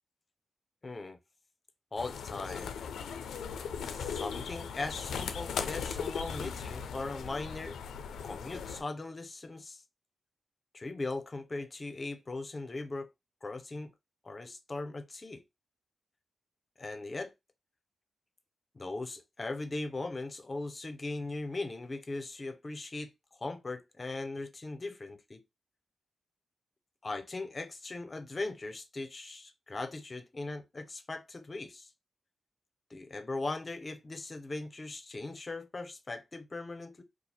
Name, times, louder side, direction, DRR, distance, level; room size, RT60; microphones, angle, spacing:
voice 1, 0.8-1.2 1.9-2.7 3.8-7.8 8.2-9.8 10.7-13.1 13.4-13.9 14.2-15.4 16.8-17.3 18.7-23.1 23.4-25.4 27.0-31.9 32.9-37.0, left 2 dB, 35° left, 0.6 m, -39 dB
sound 1, 2.0-8.8, left 6 dB, 90° left, 0.4 m, -38 dB
2.6 x 2.4 x 4.2 m
cardioid pair, 60°, 0 cm